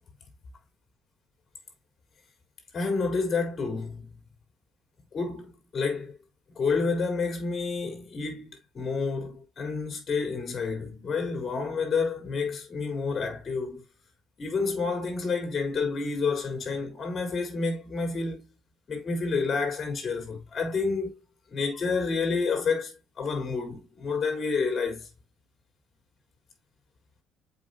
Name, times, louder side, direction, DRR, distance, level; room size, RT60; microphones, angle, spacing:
voice 1, 2.7-4.1 5.1-6.1 6.6-13.8 14.4-18.4 18.9-21.2 21.5-25.1, left 4 dB, 45° left, 3.7 m, -29 dB
7.3 x 5.4 x 2.6 m
supercardioid pair, 75°, 0 cm